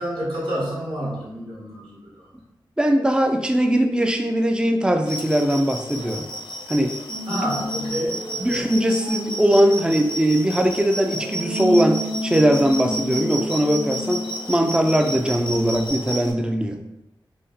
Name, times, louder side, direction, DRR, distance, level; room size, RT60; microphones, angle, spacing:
voice 1, 0.0-2.3 7.3-8.7, equal, 80° right, -9 dB, 1.1 m, -29 dB
voice 2, 2.8-6.3 6.7-6.9 7.3-7.5 8.4-16.8, equal, 10° right, 4 dB, 0.3 m, -20 dB
sound 1, 5.1-16.3, right 1 dB, 70° left, 0.5 m, -32 dB
sound 2, 7.1-15.9, equal, 50° right, 0.8 m, -32 dB
2.6 x 2.1 x 3.9 m, 0.93 s
wide cardioid pair, 60°, 9 cm